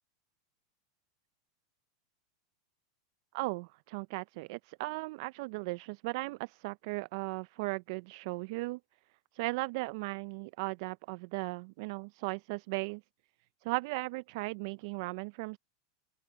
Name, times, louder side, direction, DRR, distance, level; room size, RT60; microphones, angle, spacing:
voice 1, 3.3-8.8 9.3-13.0 13.6-15.6, right 25 dB, 60° right, 0.4 m, -37 dB
open air
hypercardioid pair, 120°, 2 cm